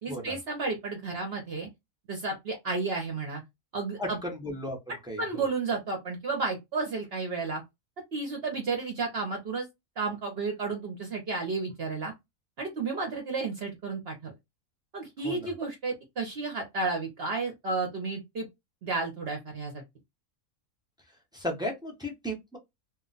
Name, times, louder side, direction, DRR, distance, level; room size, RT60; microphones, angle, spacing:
voice 1, 0.0-1.7 2.1-3.4 3.7-4.2 5.2-7.6 8.1-9.7 10.0-12.1 12.6-14.3 14.9-18.5 18.8-19.8, right 3 dB, 55° right, 0.8 m, -32 dB
voice 2, 4.0-4.8 5.1-5.5 15.2-15.5 21.3-22.6, equal, 5° right, 0.3 m, -35 dB
2.4 x 2.1 x 3.8 m
omnidirectional pair, 1.5 m